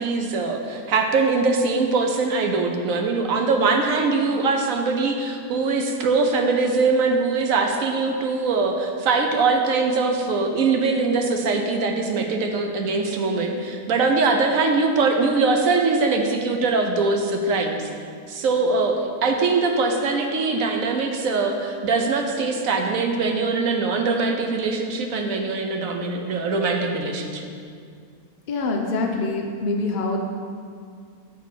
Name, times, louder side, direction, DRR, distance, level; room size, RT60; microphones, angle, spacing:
voice 1, 0.0-17.9 18.3-27.5, right 4 dB, 65° right, 3 dB, 1.0 m, -22 dB
voice 2, 28.5-30.2, left 3 dB, 70° left, 1 dB, 0.4 m, -25 dB
7.3 x 4.2 x 6.1 m, 2.3 s
omnidirectional pair, 1.7 m